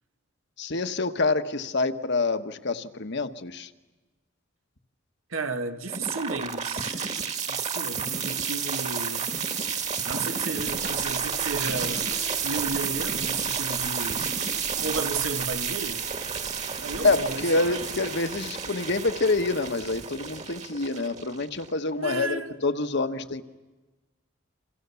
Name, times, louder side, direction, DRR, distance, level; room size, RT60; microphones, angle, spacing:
voice 1, 0.6-3.7 17.0-23.4, left 3 dB, 60° left, 1.3 m, -27 dB
voice 2, 5.3-7.1 7.5-9.3 10.0-12.1 12.4-14.3 14.8-16.0 16.8-17.8 22.0-22.6, right 3 dB, 90° right, 1.8 m, -33 dB
sound 1, 5.9-21.9, right 6 dB, 35° right, 1.7 m, -31 dB
sound 2, 10.6-17.4, right 2 dB, 65° right, 2.9 m, -45 dB
29.5 x 27.0 x 7.0 m
head